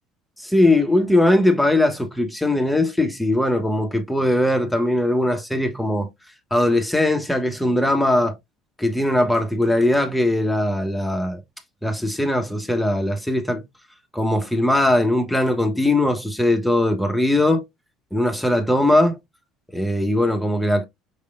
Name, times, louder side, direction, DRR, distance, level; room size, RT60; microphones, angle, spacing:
voice 1, 0.4-6.1 6.5-8.3 8.8-11.4 11.8-13.6 14.1-17.6 18.1-19.2 19.7-20.8, left 1 dB, 5° left, 1.2 m, -20 dB
5.7 x 3.4 x 2.5 m
figure-of-eight pair, 60°, 0 cm